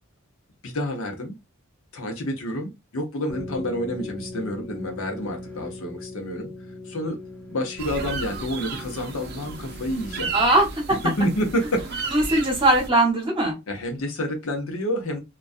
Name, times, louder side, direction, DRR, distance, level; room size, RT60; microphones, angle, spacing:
voice 1, 0.6-1.3 1.9-6.5 6.8-7.2 7.5-10.3 11.0-12.1 13.7-15.2, equal, 75° left, 0.7 m, -29 dB
sound 1, 3.3-10.8, left 2 dB, 10° left, 0.8 m, -39 dB
sound 2, 7.8-12.9, right 5 dB, 50° right, 0.4 m, -34 dB
voice 2, 10.3-11.0 12.1-13.6, right 1 dB, 25° right, 0.9 m, -20 dB
2.3 x 2.2 x 2.5 m
head